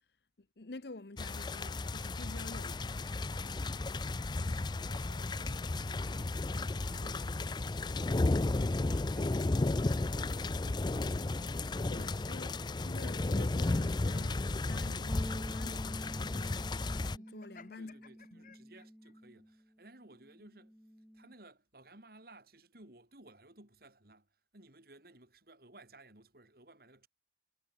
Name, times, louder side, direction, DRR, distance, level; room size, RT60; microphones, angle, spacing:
voice 1, 0.4-3.1 4.3-4.5 11.9-16.7 17.1-17.9 18.3-18.4, left 2 dB, 65° left, 1.0 m, -48 dB
sound 1, 1.2-17.2, left 2 dB, 25° left, 0.4 m, -34 dB
voice 2, 4.8-6.4 6.7-8.2 8.5-11.4 17.8-20.8 21.1-27.1, right 2 dB, 55° right, 3.4 m, -59 dB
sound 2, 15.1-19.6 19.9-21.3, equal, ahead, 2.7 m, -48 dB
Laughter, 16.8-19.1, left 5 dB, 45° left, 2.0 m, -59 dB
head